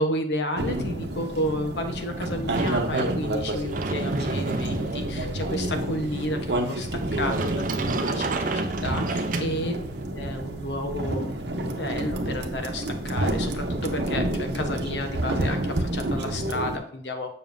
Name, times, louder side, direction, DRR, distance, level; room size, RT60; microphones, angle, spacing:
voice 1, 0.0-9.8 10.1-17.3, left 1 dB, 70° left, 6 dB, 1.0 m, -31 dB
sound 1, 0.6-16.8, right 1 dB, 65° right, 0.9 m, -29 dB
Sliding door, 2.5-10.0, right 3 dB, 45° right, 0.5 m, -31 dB
7.0 x 6.6 x 2.6 m, 0.66 s
head